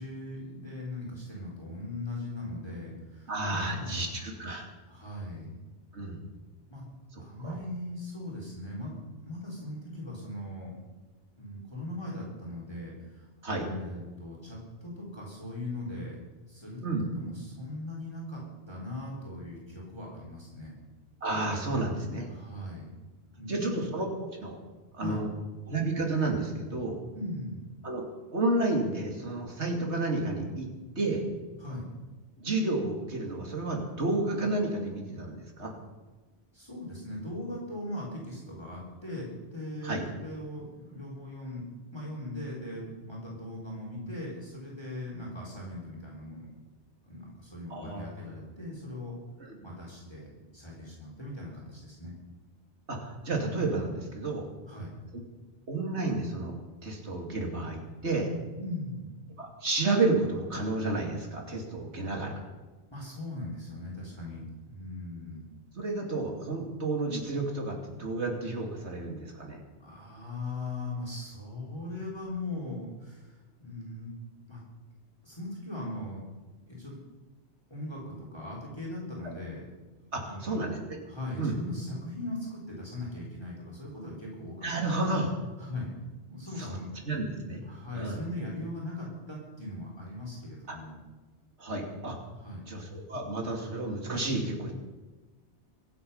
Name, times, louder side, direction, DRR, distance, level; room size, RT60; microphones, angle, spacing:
voice 1, 0.0-4.1 4.9-5.5 6.7-6.8 7.2-10.7 11.4-16.2 16.4-18.4 18.7-20.8 22.3-22.9 23.3-23.9 25.0-25.2 27.1-27.6 31.6-31.9 36.5-41.6 41.9-46.5 47.0-49.1 49.6-52.1 54.7-54.9 58.6-59.0 62.9-65.4 69.8-74.1 74.5-74.6 75.2-76.3 76.7-77.0 77.7-79.6 80.2-80.6 81.1-84.7 85.6-85.9 86.3-86.9 87.6-91.0 92.4-92.7, left 1 dB, 20° left, -3 dB, 3.8 m, -39 dB
voice 2, 3.3-4.7 5.9-6.2 7.1-7.6 13.4-13.7 16.8-17.1 21.2-22.3 23.5-24.6 24.9-25.3 25.7-27.0 27.8-28.0 28.3-30.7 31.0-31.2 32.4-35.7 39.8-40.0 47.7-48.1 49.4-49.6 52.9-54.5 55.7-56.5 56.8-58.3 59.4-62.4 65.7-69.6 80.1-80.8 81.4-81.6 84.6-85.3 86.6-86.8 87.1-87.6 87.9-88.2 90.7-90.8 91.6-92.2 92.7-94.7, right 2 dB, 75° right, 1 dB, 3.0 m, -31 dB
24.0 x 8.6 x 5.6 m, 1.2 s
omnidirectional pair, 1.2 m